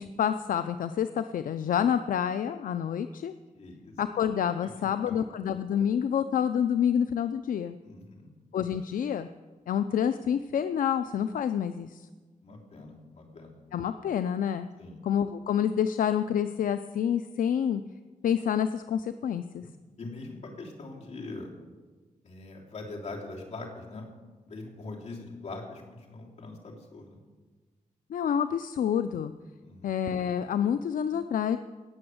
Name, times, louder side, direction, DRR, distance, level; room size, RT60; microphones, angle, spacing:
voice 1, 0.0-3.3 4.0-7.8 8.5-9.3 9.7-12.1 13.7-14.7 15.0-17.8 18.2-19.6 28.1-29.3 29.8-31.6, left 8 dB, 80° left, 10 dB, 0.5 m, -28 dB
voice 2, 3.5-3.9 4.6-5.1 7.8-8.3 12.4-13.6 14.8-15.0 19.6-19.7 20.0-21.5 22.2-24.1 24.5-27.2 29.6-29.9, left 3 dB, 55° left, -2 dB, 3.3 m, -42 dB
17.5 x 7.0 x 7.9 m, 1.3 s
wide cardioid pair, 155°, 14 cm